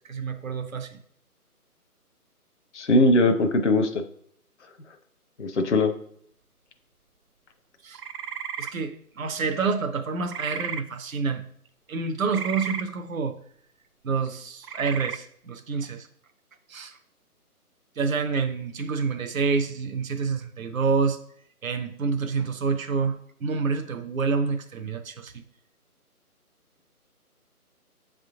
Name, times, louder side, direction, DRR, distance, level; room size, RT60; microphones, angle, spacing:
voice 1, 0.1-1.0 7.8-8.0 8.6-11.4 11.9-13.4 14.0-16.1 16.7-17.0 18.0-21.2 21.6-25.4, right 4 dB, 60° right, 7 dB, 0.8 m, -28 dB
voice 2, 2.7-4.0 5.4-5.9, left 2 dB, 50° left, 5 dB, 0.6 m, -20 dB
sound 1, 7.9-8.7 10.3-10.8 12.3-12.8 14.6-15.2, right 7 dB, 90° right, 0.7 m, -33 dB
7.4 x 3.7 x 3.6 m, 0.64 s
hypercardioid pair, 175°, 46 cm